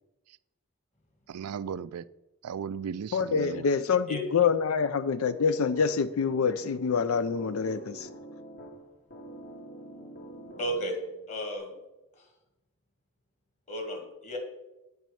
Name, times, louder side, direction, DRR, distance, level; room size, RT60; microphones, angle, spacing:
voice 1, 1.3-2.0 2.4-3.7, right 7 dB, 85° right, 16 dB, 0.4 m, -36 dB
voice 2, 3.1-8.1, left 6 dB, 70° left, 13 dB, 0.4 m, -26 dB
sound 1, 5.3-11.2, right 2 dB, 50° left, 1.8 m, -46 dB
voice 3, 10.6-11.0 11.3-11.7 13.7-14.4, right 1 dB, 30° left, 3 dB, 2.0 m, -33 dB
9.2 x 6.1 x 6.9 m, 0.99 s
head